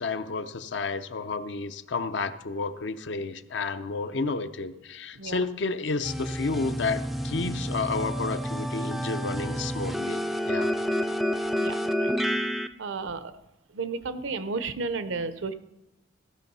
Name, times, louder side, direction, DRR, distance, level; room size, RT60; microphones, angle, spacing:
voice 1, 0.0-10.7, left 4 dB, 65° left, 11 dB, 0.6 m, -31 dB
sound 1, 6.0-12.7, equal, ahead, 0.3 m, -29 dB
voice 2, 11.6-12.1 12.8-13.3 13.7-15.5, right 4 dB, 80° right, 12 dB, 0.7 m, -33 dB
14.5 x 6.0 x 5.5 m, 0.93 s
head